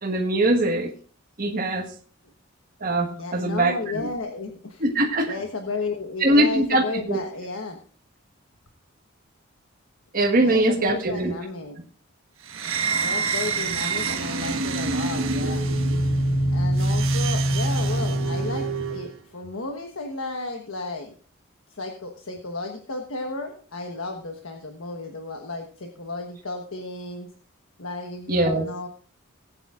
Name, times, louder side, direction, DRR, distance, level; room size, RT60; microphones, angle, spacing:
voice 1, 0.0-0.9 1.4-1.9 2.8-4.1 4.8-5.3 6.2-7.2 10.1-11.3 28.3-28.6, right 1 dB, 40° right, 0 dB, 1.5 m, -22 dB
voice 2, 3.1-4.8 5.3-7.8 10.4-11.8 13.0-15.6 16.5-21.1 21.7-27.3 27.8-28.9, left 3 dB, 75° left, 3 dB, 1.3 m, -33 dB
sound 1, 12.5-19.1, right 2 dB, 70° right, 1.4 m, -24 dB
19.5 x 9.0 x 2.5 m, 0.43 s
head